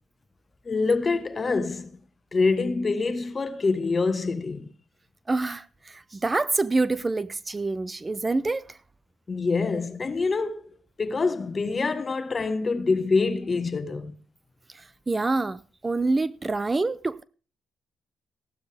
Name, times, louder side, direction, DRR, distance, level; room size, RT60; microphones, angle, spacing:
voice 1, 0.6-1.9 2.3-4.7 9.3-10.7 11.0-14.1, left 4 dB, 35° left, 1.3 m, -25 dB
voice 2, 5.3-8.8 14.7-17.2, right 3 dB, 25° right, 0.6 m, -27 dB
15.5 x 12.0 x 3.5 m
cardioid pair, 90°, 0 cm